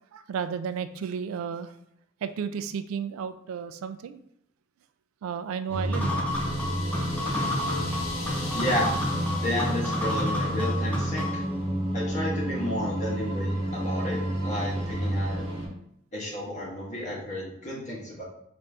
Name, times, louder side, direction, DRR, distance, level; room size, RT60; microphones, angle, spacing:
voice 1, 0.1-1.7 2.2-4.2 5.2-6.3, right 7 dB, 80° right, 12 dB, 0.3 m, -33 dB
sound 1, 5.7-15.7, equal, 25° right, 1.2 m, -30 dB
sound 2, 5.9-11.5, left 1 dB, 5° left, 0.7 m, -30 dB
sound 3, 6.3-11.1, left 3 dB, 90° left, 0.9 m, -42 dB
voice 2, 8.5-8.9 9.4-11.4 11.9-15.4 16.1-18.2, left 1 dB, 35° left, -4 dB, 1.3 m, -32 dB
4.2 x 2.6 x 3.4 m, 0.74 s
head